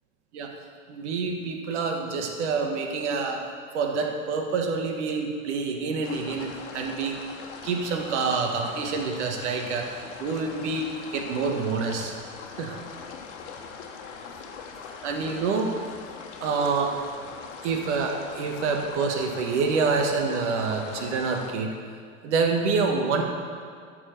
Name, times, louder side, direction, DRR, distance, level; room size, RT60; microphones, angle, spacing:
voice 1, 0.9-3.4 3.7-7.2 7.6-9.9 10.2-12.1 12.5-13.0 15.0-15.7 16.4-17.0 17.6-21.7 22.2-23.2, right 4 dB, 60° right, 2 dB, 1.6 m, -27 dB
sound 1, 6.0-21.5, left 5 dB, 60° left, 1.3 m, -41 dB
12.5 x 4.7 x 6.7 m, 2.2 s
figure-of-eight pair, 85°, 40 cm